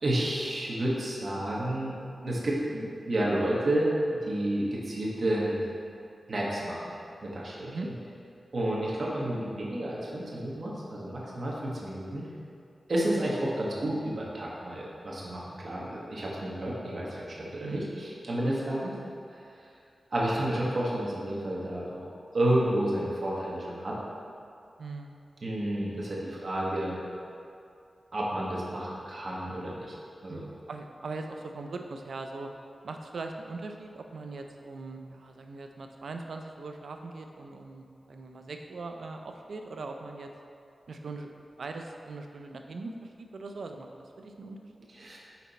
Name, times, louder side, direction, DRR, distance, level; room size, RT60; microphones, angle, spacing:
voice 1, 0.0-2.0 2.2-3.9 4.2-5.6 6.3-6.8 7.2-7.9 8.5-12.2 12.9-18.9 19.3-19.4 20.1-23.9 25.4-27.0 28.1-29.9 30.2-30.4 44.9-45.2, right 1 dB, 60° right, -5 dB, 1.2 m, -30 dB
voice 2, 17.6-18.0 24.8-25.2 30.3-32.5 32.8-40.3 40.9-41.3 41.6-44.6, right 3 dB, 80° right, 4 dB, 0.4 m, -40 dB
5.8 x 4.2 x 4.1 m, 2.5 s
cardioid pair, 60°, 0 cm